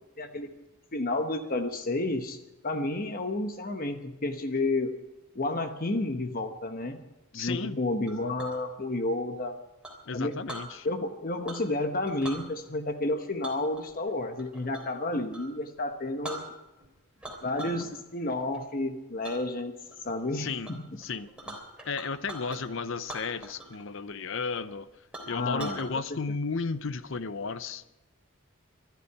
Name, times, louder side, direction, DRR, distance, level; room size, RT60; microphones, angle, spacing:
voice 1, 0.2-0.5 0.9-2.4 2.6-4.9 5.3-7.0 7.3-9.6 10.1-10.4 10.8-16.5 17.4-19.8 20.0-20.8 25.3-25.8 26.1-26.2, left 2 dB, 40° left, 6 dB, 1.1 m, -31 dB
voice 2, 7.3-7.8 10.1-10.9 20.3-20.7 21.0-21.3 21.9-24.9 25.2-27.9, left 4 dB, 60° left, 13 dB, 0.7 m, -33 dB
Chink clink, 8.1-8.6 9.8-10.7 11.4-11.8 12.1-12.4 13.4-15.0 15.3-15.5 15.9-16.0 16.2-16.9 17.2-17.9 18.2-18.6 19.2-19.4 19.9-20.3 20.6-20.7 21.0-22.6 23.0-23.8 24.1-24.2 24.7-24.8 25.1-25.9, right 1 dB, 5° right, 3.4 m, -42 dB
24.5 x 11.5 x 4.7 m, 1.0 s
head